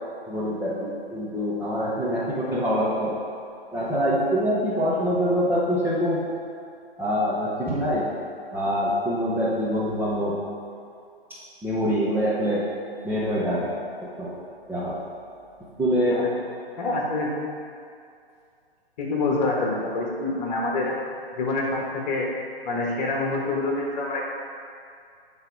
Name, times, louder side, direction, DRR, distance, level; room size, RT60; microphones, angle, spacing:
voice 1, 0.3-3.1 3.7-6.3 7.0-8.1 8.5-10.3 11.3-12.6 13.0-13.7 14.0-14.4 14.7-15.0 15.8-16.2, equal, 5° right, -10 dB, 0.9 m, -25 dB
voice 2, 16.8-17.3 19.0-21.0 21.4-22.3 22.6-24.2, left 2 dB, 45° left, -2 dB, 1.6 m, -26 dB
8.7 x 3.8 x 4.7 m, 2.4 s
hypercardioid pair, 145°, 30 cm